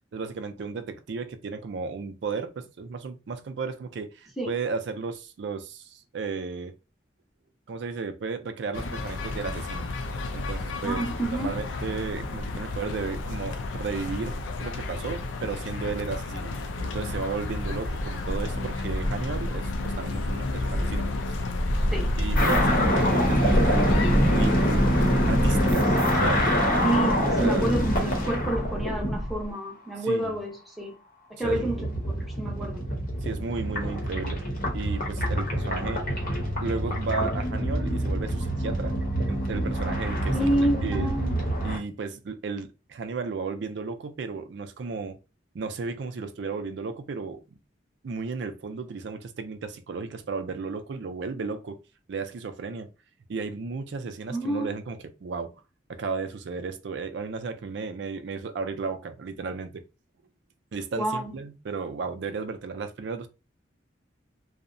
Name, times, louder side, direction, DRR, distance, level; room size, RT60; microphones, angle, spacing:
voice 1, 0.1-6.7 7.7-9.9 10.3-16.6 16.8-21.4 22.2-23.7 24.3-24.6 25.3-26.0 26.2-26.5 27.4-27.8 30.0-30.4 31.4-31.9 33.2-34.4 34.7-36.0 36.6-39.0 39.3-40.6 40.8-41.1 41.6-45.2 45.5-47.4 48.0-51.8 52.1-52.9 53.3-55.6 55.9-59.8 60.7-63.3, right 4 dB, 65° right, 0.4 m, -34 dB
sound 1, 8.7-25.7, left 2 dB, 80° left, 0.4 m, -31 dB
voice 2, 10.8-11.5 21.9-22.1 26.8-31.0 31.3-31.8 32.2-32.8 40.3-41.4 54.3-54.7 61.0-61.3, right 1 dB, ahead, 0.6 m, -28 dB
sound 2, 16.9-28.0, equal, 80° right, 0.9 m, -34 dB
sound 3, 22.4-29.4 31.4-41.8, equal, 45° left, 0.7 m, -25 dB
2.7 x 2.1 x 2.5 m
head